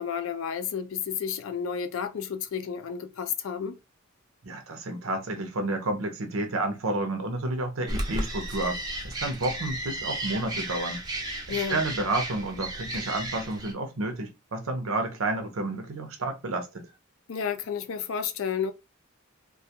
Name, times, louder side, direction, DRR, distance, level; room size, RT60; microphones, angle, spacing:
voice 1, 0.0-3.8 11.5-11.8 17.3-18.7, left 7 dB, 70° left, 0.4 m, -31 dB
voice 2, 4.4-11.0 11.7-16.9, right 2 dB, 85° right, 0.7 m, -30 dB
sound 1, 7.9-13.7, right 1 dB, 20° right, 0.6 m, -34 dB
2.3 x 2.2 x 2.8 m
head